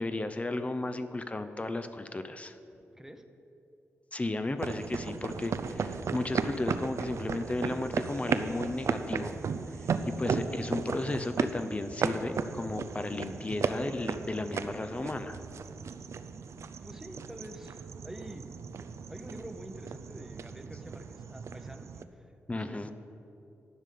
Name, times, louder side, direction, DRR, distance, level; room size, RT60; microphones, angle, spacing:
voice 1, 0.0-2.6 4.1-9.4 10.1-15.4 22.5-22.9, left 2 dB, 25° left, 9 dB, 0.6 m, -34 dB
sound 1, 4.6-22.0, right 5 dB, 65° right, 0.5 m, -35 dB
voice 2, 16.5-18.4 19.1-22.9, right 1 dB, 10° right, 7 dB, 0.8 m, -47 dB
11.0 x 5.1 x 8.4 m, 2.7 s
cardioid pair, 65°, 5 cm